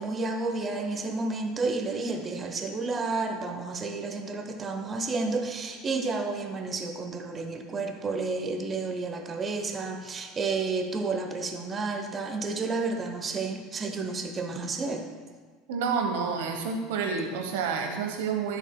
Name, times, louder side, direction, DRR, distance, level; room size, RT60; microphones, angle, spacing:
voice 1, 0.0-15.1, right 3 dB, 25° right, 4 dB, 1.0 m, -31 dB
voice 2, 15.7-18.6, right 5 dB, 65° right, 3 dB, 1.0 m, -29 dB
11.5 x 6.4 x 2.2 m, 1.5 s
figure-of-eight pair, 70°, 0 cm